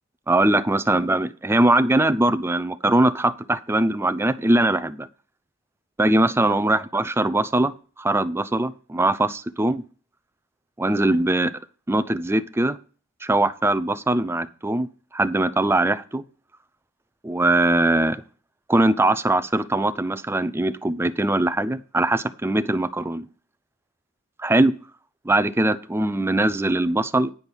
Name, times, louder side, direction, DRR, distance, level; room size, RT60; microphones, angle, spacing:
voice 1, 0.3-5.1 6.0-7.7 8.0-9.8 10.8-11.5 11.9-12.8 13.2-14.9 15.1-16.2 17.2-18.2 18.7-23.2 24.4-24.7 25.2-27.3, right 1 dB, 10° right, 12 dB, 0.4 m, -21 dB
9.8 x 5.2 x 6.2 m, 0.39 s
head